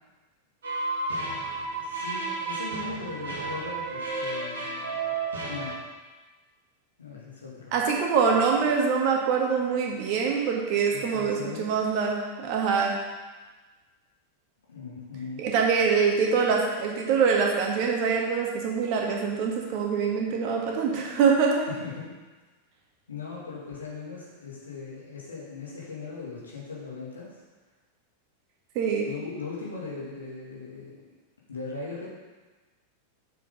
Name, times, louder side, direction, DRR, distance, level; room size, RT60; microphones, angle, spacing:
sound 1, 0.6-5.7, right 3 dB, 65° right, 1.8 m, -32 dB
voice 1, 1.8-5.2 5.5-5.8 7.0-7.7 10.9-11.7 14.7-15.4 21.8-22.1 23.1-27.4 29.0-31.0 31.5-32.1, left 4 dB, 75° left, -4 dB, 2.3 m, -39 dB
voice 2, 7.7-13.0 15.4-21.7 28.8-29.1, right 5 dB, 45° right, 0 dB, 1.7 m, -24 dB
7.1 x 6.0 x 5.5 m, 1.3 s
figure-of-eight pair, 90°, 0 cm